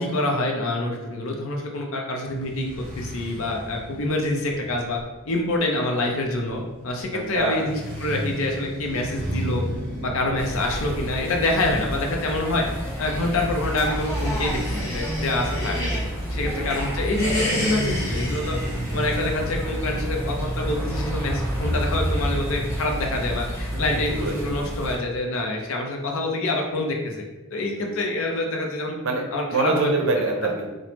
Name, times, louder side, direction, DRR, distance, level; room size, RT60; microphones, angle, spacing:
voice 1, 0.0-5.0 5.2-9.6 10.0-12.6 13.0-15.7 16.3-18.6 18.9-27.2 27.5-29.0 29.3-29.9, left 2 dB, 70° left, 1 dB, 0.5 m, -26 dB
sound 1, 2.2-19.5, equal, 10° left, 0.7 m, -35 dB
voice 2, 7.1-7.7 15.6-16.8 23.7-24.5 27.7-28.1 29.0-29.2 29.5-30.7, right 3 dB, 60° right, 2 dB, 0.5 m, -27 dB
sound 2, 10.4-25.0, equal, 30° left, 1.0 m, -29 dB
sound 3, 13.4-16.1 16.5-19.3, left 1 dB, 55° left, 1.0 m, -33 dB
2.9 x 2.0 x 3.2 m, 1.1 s
head